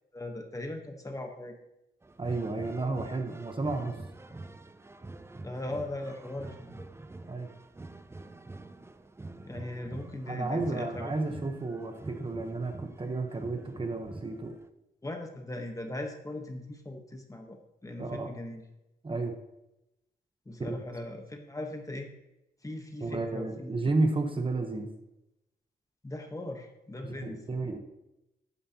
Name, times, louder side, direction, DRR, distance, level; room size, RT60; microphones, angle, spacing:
voice 1, 0.1-1.5 5.4-6.9 9.4-11.1 15.0-18.6 20.5-22.1 22.6-23.8 26.0-27.4, left 1 dB, 20° left, 3 dB, 1.1 m, -39 dB
sound 1, 2.0-14.7, right 2 dB, 15° right, 0.4 m, -46 dB
voice 2, 2.2-3.9 7.3-7.5 10.3-14.5 18.0-18.3 19.0-19.3 20.7-20.8 23.0-24.9 27.0-27.8, right 3 dB, 30° right, 5 dB, 1.0 m, -32 dB
12.5 x 9.5 x 2.9 m, 0.91 s
wide cardioid pair, 135°, 18 cm